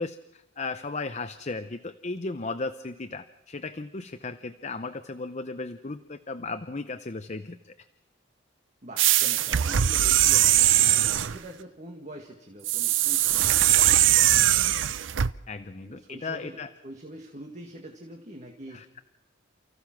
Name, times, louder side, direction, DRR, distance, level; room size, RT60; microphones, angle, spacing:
voice 1, 0.0-7.7 15.5-16.7 18.7-19.0, left 3 dB, 35° left, 9 dB, 0.7 m, -35 dB
voice 2, 8.8-14.4 15.8-19.0, right 1 dB, 35° right, 2 dB, 1.8 m, -44 dB
sound 1, 9.0-11.4 12.6-15.3, right 12 dB, 70° right, 0.6 m, -21 dB
29.5 x 15.0 x 6.0 m, 1.1 s
head